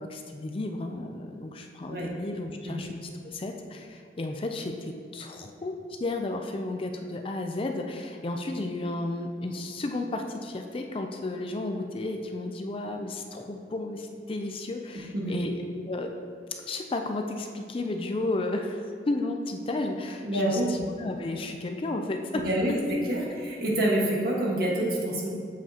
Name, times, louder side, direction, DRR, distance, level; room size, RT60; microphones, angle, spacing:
voice 1, 0.0-16.1 16.7-18.8 19.1-22.5, left 2 dB, 30° left, 4 dB, 0.4 m, -33 dB
voice 2, 20.2-20.7 22.4-22.8 23.1-25.3, right 1 dB, 55° right, -3 dB, 1.5 m, -27 dB
7.6 x 7.3 x 2.9 m, 2.3 s
head